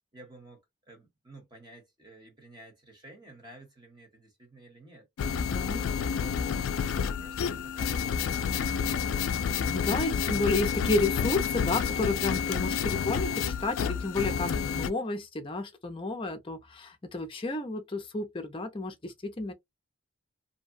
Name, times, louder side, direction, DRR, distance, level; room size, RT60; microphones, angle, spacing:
voice 1, 0.1-5.1 5.7-6.6 7.0-9.1, right 2 dB, 20° right, 1.1 m, -53 dB
sound 1, 5.2-14.9, left 7 dB, 75° left, 0.3 m, -29 dB
voice 2, 5.3-6.0 9.7-19.5, left 2 dB, 25° left, 0.5 m, -31 dB
2.7 x 2.2 x 2.5 m
head